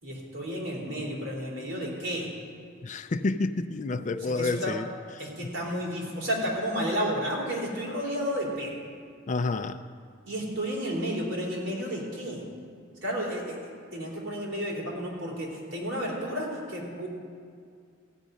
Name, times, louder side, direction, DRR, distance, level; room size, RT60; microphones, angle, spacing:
voice 1, 0.0-2.3 4.2-4.7 5.2-8.8 10.3-12.4 13.0-17.1, equal, 70° right, -3 dB, 3.6 m, -32 dB
voice 2, 2.8-4.9 5.4-5.5 9.3-9.8, left 3 dB, 40° left, 10 dB, 0.4 m, -29 dB
15.5 x 5.3 x 9.2 m, 2.2 s
head